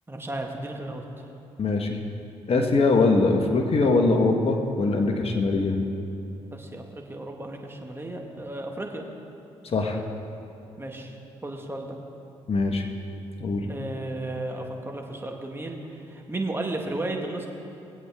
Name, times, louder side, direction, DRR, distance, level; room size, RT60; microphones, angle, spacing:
voice 1, 0.1-1.0 6.5-9.1 10.8-11.2 11.4-12.0 13.7-17.5, right 2 dB, 20° right, 1 dB, 1.9 m, -34 dB
voice 2, 1.6-2.0 2.5-5.8 9.7-10.0 12.5-12.8 13.4-13.7, left 3 dB, 50° left, 4 dB, 1.5 m, -22 dB
20.5 x 8.2 x 3.7 m, 2.8 s
supercardioid pair, 55°, 13 cm